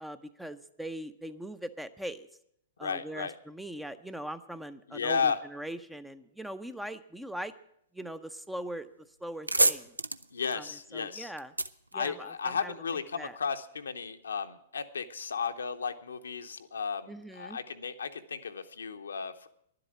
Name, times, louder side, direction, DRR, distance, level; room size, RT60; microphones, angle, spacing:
voice 1, 0.0-2.3 2.8-7.5 7.9-8.9 9.2-10.0 10.5-11.5 11.9-12.7 13.1-13.4 17.1-17.6, right 1 dB, 5° right, 12 dB, 0.6 m, -41 dB
voice 2, 2.8-3.3 4.9-5.4 10.3-11.3 11.9-19.5, left 6 dB, 70° left, 8 dB, 0.8 m, -34 dB
sound 1, 8.7-8.9 9.2-12.8, right 2 dB, 85° right, 0.5 m, -30 dB
11.0 x 7.9 x 9.7 m, 0.72 s
figure-of-eight pair, 105°, 0 cm